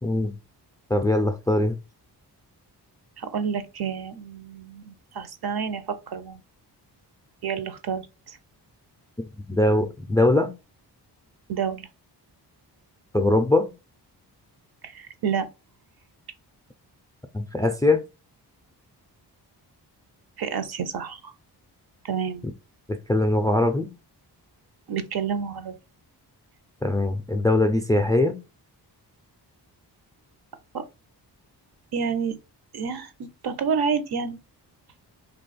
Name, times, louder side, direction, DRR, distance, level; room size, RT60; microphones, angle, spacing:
voice 1, 0.0-0.4 0.9-1.8 9.5-10.5 13.1-13.7 17.3-18.0 22.4-22.5 22.9-23.9 26.8-28.4, left 2 dB, 10° left, 0.3 m, -21 dB
voice 2, 3.2-6.4 7.4-8.4 11.5-11.9 14.8-15.5 20.4-21.3 22.0-22.4 24.9-25.8 30.7-30.8 31.9-32.4 32.7-34.4, right 6 dB, 60° right, 0.6 m, -29 dB
3.0 x 2.3 x 4.0 m
cardioid pair, 80°, 42 cm